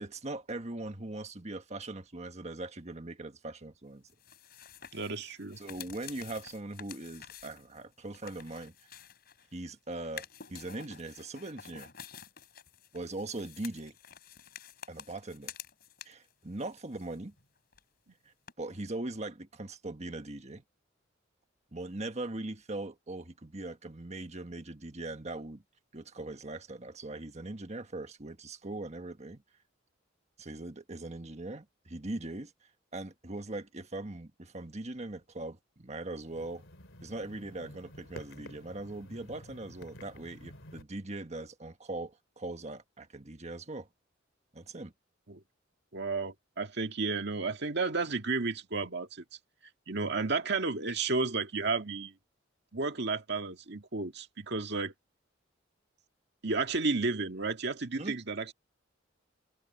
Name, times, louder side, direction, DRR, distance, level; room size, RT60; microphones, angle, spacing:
voice 1, 0.0-4.1 5.6-8.7 9.5-11.9 12.9-13.9 14.9-15.5 16.0-17.3 18.2-20.6 21.7-25.6 25.9-29.4 30.4-32.5 32.9-36.6 37.0-43.9 44.5-44.9 58.0-58.2, right 2 dB, 35° right, 1.5 m, -40 dB
sound 1, 4.1-9.6 10.0-16.3 16.6-17.5 17.7-17.8 18.5-18.6, left 8 dB, 50° left, 5.7 m, -50 dB
voice 2, 4.9-5.6 45.3-45.4 45.9-49.2 49.9-52.1 52.7-54.9 56.4-58.5, right 3 dB, 60° right, 2.0 m, -32 dB
sound 2, 36.2-40.8, left 1 dB, 75° left, 3.2 m, -51 dB
head